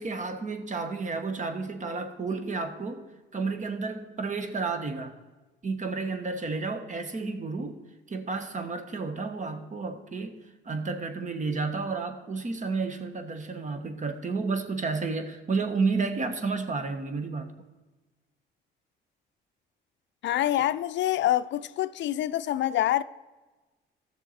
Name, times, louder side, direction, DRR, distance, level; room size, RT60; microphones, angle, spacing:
voice 1, 0.0-3.0 3.3-5.2 5.6-7.8 8.1-10.4 10.6-17.5, right 4 dB, 40° right, 1.3 m, -31 dB
voice 2, 20.2-23.0, left 13 dB, 65° left, 0.4 m, -26 dB
14.5 x 6.6 x 4.2 m
cardioid pair, 90°, 20 cm